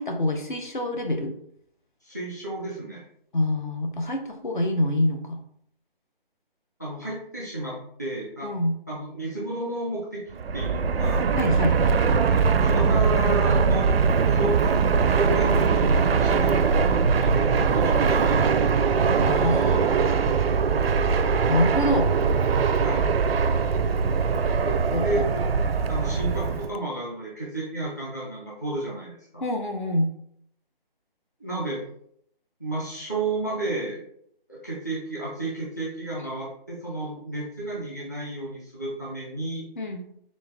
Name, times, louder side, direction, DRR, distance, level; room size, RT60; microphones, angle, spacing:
voice 1, 0.0-1.3 3.3-5.4 8.4-8.7 11.4-11.9 19.2-19.9 21.5-22.1 24.6-25.3 29.4-30.1 39.8-40.0, left 1 dB, 55° left, 4 dB, 0.8 m, -26 dB
voice 2, 2.0-3.0 6.8-8.5 8.9-10.2 10.5-11.3 12.2-14.0 14.3-18.9 22.8-23.1 25.0-25.4 25.9-29.4 31.4-31.8 32.6-34.0 34.5-39.7, right 2 dB, 20° left, -6 dB, 0.7 m, -32 dB
Fixed-wing aircraft airplane, 10.3-26.7, right 5 dB, 85° right, 0.5 m, -21 dB
4.2 x 3.5 x 3.4 m, 0.69 s
hypercardioid pair, 180°, 29 cm